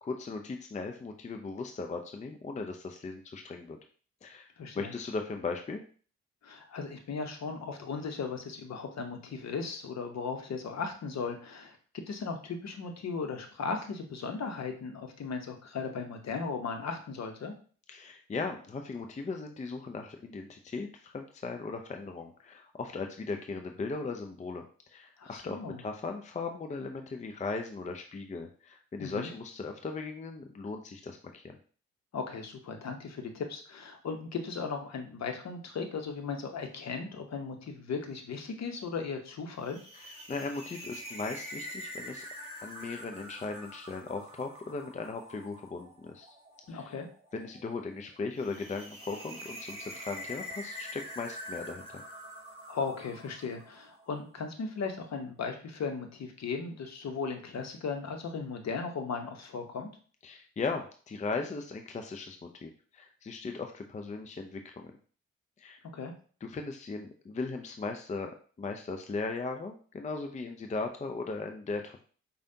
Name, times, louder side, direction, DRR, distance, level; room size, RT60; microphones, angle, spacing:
voice 1, 0.0-3.8 4.2-4.5 4.7-5.8 17.9-31.6 40.3-42.2 42.6-46.3 46.7-46.9 47.3-52.0 60.2-64.9 65.6-65.8 66.4-72.0, left 4 dB, 20° left, 5 dB, 0.5 m, -38 dB
voice 2, 4.6-4.9 6.4-17.5 25.2-25.8 29.0-29.3 32.1-39.8 46.7-47.1 52.7-59.9 65.9-66.1, left 5 dB, 50° left, 5 dB, 0.9 m, -37 dB
sound 1, 39.6-54.0, equal, 20° right, 1.5 m, -45 dB
4.9 x 2.3 x 2.7 m, 0.42 s
hypercardioid pair, 45°, 35 cm